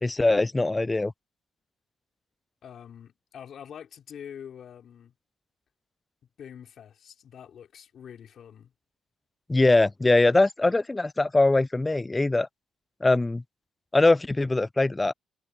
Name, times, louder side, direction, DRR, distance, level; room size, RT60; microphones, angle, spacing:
voice 1, 0.0-1.1 9.5-12.5 13.0-13.4 13.9-15.1, left 2 dB, 15° left, 0.4 m, -22 dB
voice 2, 2.6-5.1 6.4-8.7, left 8 dB, 60° left, 5.1 m, -45 dB
cardioid pair, 100°, 0 cm